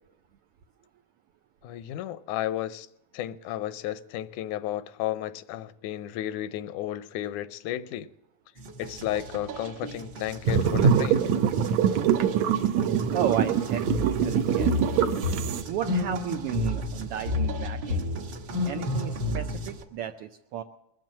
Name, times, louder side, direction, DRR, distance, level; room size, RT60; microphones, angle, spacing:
voice 1, 1.6-2.9 3.1-8.1 8.8-11.2, left 12 dB, 85° left, 2.1 m, -33 dB
sound 1, 8.6-19.8, left 2 dB, 55° right, 1.4 m, -32 dB
sound 2, 10.5-15.6, right 7 dB, 75° right, 1.9 m, -24 dB
voice 2, 13.1-14.9 15.7-18.3 18.6-20.6, right 10 dB, 90° right, 1.2 m, -33 dB
21.5 x 7.6 x 7.4 m
omnidirectional pair, 3.4 m